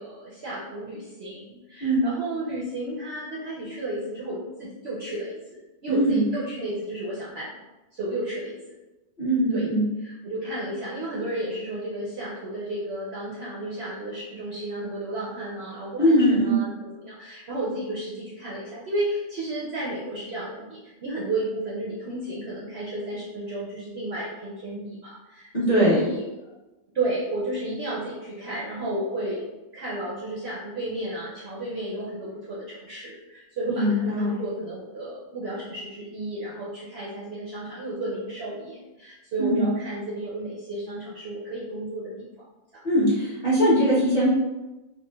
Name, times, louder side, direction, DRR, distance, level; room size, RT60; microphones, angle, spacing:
voice 1, 0.0-7.5 7.9-8.5 9.5-9.7 10.0-26.5 26.9-29.4 29.7-42.3 42.7-42.8, right 1 dB, 60° right, -7 dB, 0.7 m, -32 dB
voice 2, 5.9-6.2 9.2-9.9 16.0-16.5 25.5-26.0 33.7-34.4 39.4-39.6 42.8-44.3, equal, 35° left, -10 dB, 0.7 m, -21 dB
3.0 x 2.4 x 2.2 m, 1.1 s
omnidirectional pair, 1.6 m